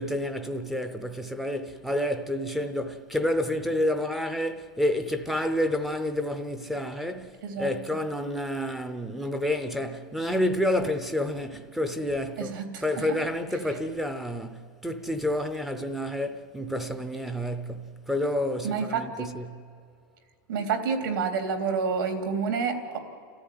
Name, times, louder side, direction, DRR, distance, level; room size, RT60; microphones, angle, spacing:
voice 1, 0.0-19.7, left 1 dB, ahead, 0.6 m, -29 dB
voice 2, 12.4-13.1 18.6-19.3 20.5-23.0, right 5 dB, 70° right, 3.4 m, -29 dB
29.5 x 14.0 x 9.6 m
supercardioid pair, 180°, 12 cm